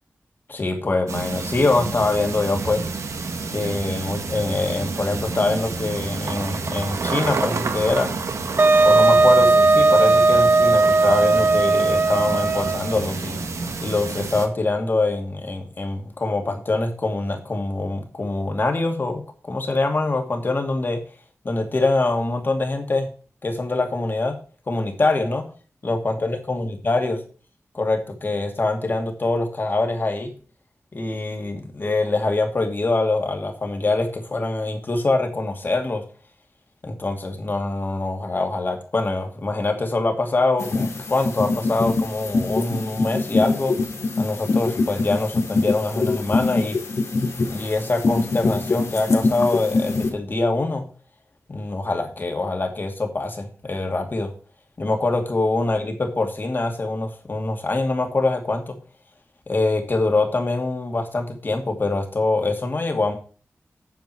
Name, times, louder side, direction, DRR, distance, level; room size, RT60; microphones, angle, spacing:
voice 1, 0.5-2.9 3.5-8.1 8.8-13.4 13.8-19.2 19.5-21.0 21.4-23.1 23.4-24.3 24.7-25.4 25.8-27.2 27.7-30.3 30.9-36.0 36.8-43.7 44.2-46.8 47.5-50.8 51.5-54.3 54.8-58.7 59.5-63.1, left 2 dB, 45° left, 4 dB, 2.5 m, -24 dB
sound 1, 1.1-14.5, right 4 dB, 85° right, 1.5 m, -29 dB
Wind instrument woodwind instrument, 8.6-12.9, right 3 dB, 40° right, 0.5 m, -16 dB
sound 2, 40.6-50.1, left 3 dB, 70° left, 2.5 m, -24 dB
9.4 x 7.2 x 4.5 m, 0.39 s
wide cardioid pair, 115°, 5 cm